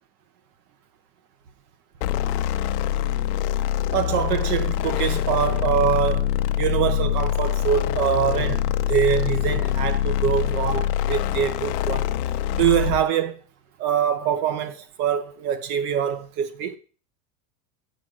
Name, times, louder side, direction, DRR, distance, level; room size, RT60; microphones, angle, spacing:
sound 1, 2.0-13.1, left 12 dB, 80° left, 0.7 m, -24 dB
voice 1, 3.9-6.3 6.6-12.1 12.5-13.4 13.8-16.8, right 9 dB, 80° right, 1.4 m, -24 dB
7.6 x 4.8 x 6.2 m
supercardioid pair, 145°, 46 cm